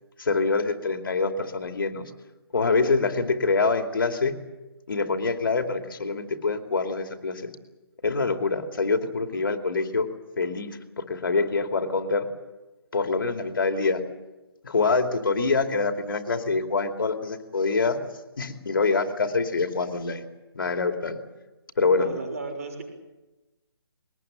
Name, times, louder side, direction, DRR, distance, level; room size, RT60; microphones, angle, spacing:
voice 1, 0.2-2.1 2.5-4.3 4.9-7.5 8.0-10.1 10.4-12.3 12.9-14.0 14.6-18.0 18.4-20.2 20.5-21.2 21.8-22.1, left 4 dB, 60° left, 5 dB, 2.6 m, -25 dB
voice 2, 21.9-22.8, right 3 dB, 35° right, 4 dB, 6.3 m, -35 dB
22.0 x 19.5 x 9.0 m, 1.1 s
hypercardioid pair, 180°, 13 cm